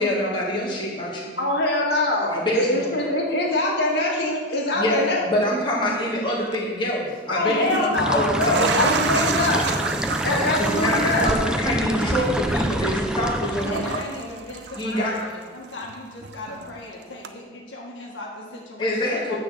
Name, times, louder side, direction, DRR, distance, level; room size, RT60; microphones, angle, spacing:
voice 1, 0.0-1.4 2.3-3.0 4.7-9.7 10.6-13.8 14.2-14.3 14.7-15.1 18.8-19.4, left 1 dB, 25° left, -5 dB, 1.8 m, -26 dB
voice 2, 1.4-5.2 7.3-9.6 10.2-11.3, left 1 dB, 60° left, -3 dB, 2.1 m, -23 dB
sound 1, 6.4-6.6 7.4-15.4 15.7-16.8 17.2-17.3, right 5 dB, 65° right, 0.5 m, -31 dB
sound 2, 8.0-14.0, equal, 5° right, 0.4 m, -26 dB
voice 3, 13.7-15.3 15.5-19.4, left 2 dB, 80° left, -2 dB, 1.5 m, -38 dB
9.8 x 4.2 x 7.3 m, 1.5 s
head